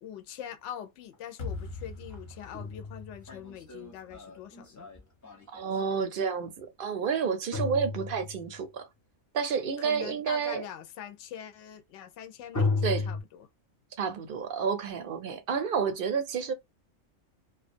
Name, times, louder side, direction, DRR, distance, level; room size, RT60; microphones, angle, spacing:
voice 1, 0.0-4.9 9.8-13.5, left 9 dB, 70° left, 0.9 m, -43 dB
sound 1, 1.1-1.2 2.1-5.8 7.5-8.7 12.5-13.2, left 4 dB, 30° left, 0.3 m, -33 dB
sound 2, 1.4-4.5, left 3 dB, 45° left, 0.9 m, -42 dB
voice 2, 5.5-8.9 9.3-10.6 12.8-13.1 14.0-16.5, right 6 dB, 60° right, 0.6 m, -30 dB
2.3 x 2.3 x 2.5 m
omnidirectional pair, 1.3 m